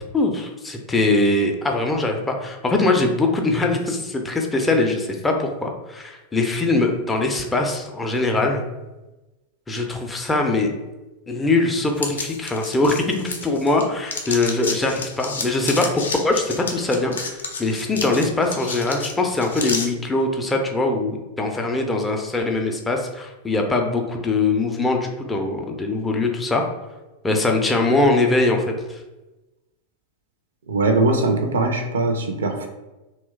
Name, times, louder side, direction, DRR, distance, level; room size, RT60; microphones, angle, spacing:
voice 1, 0.1-8.6 9.7-10.7 11.3-26.6 27.2-29.0, left 2 dB, 10° left, 2 dB, 0.4 m, -22 dB
sound 1, 12.0-13.8 14.1-19.9, left 4 dB, 70° left, 0.5 m, -30 dB
voice 2, 30.7-32.7, right 2 dB, 65° right, 5 dB, 0.4 m, -21 dB
2.9 x 2.2 x 3.3 m, 1.1 s
figure-of-eight pair, 90°, 0 cm